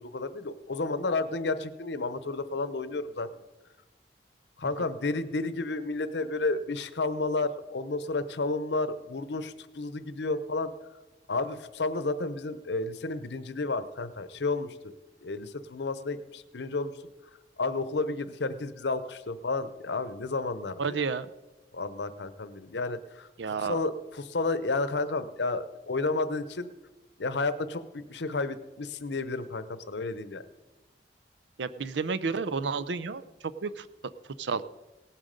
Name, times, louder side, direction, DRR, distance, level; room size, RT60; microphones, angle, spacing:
voice 1, 0.0-3.3 4.6-10.7 11.3-14.9 15.2-16.9 17.6-21.1 21.7-23.3 23.7-26.7 27.2-30.4, left 3 dB, 80° left, 13 dB, 0.8 m, -31 dB
voice 2, 20.8-21.3 23.4-23.8 31.6-33.2 33.6-33.9 34.4-34.6, right 5 dB, 85° right, 13 dB, 0.6 m, -31 dB
18.0 x 7.5 x 5.2 m, 1.1 s
head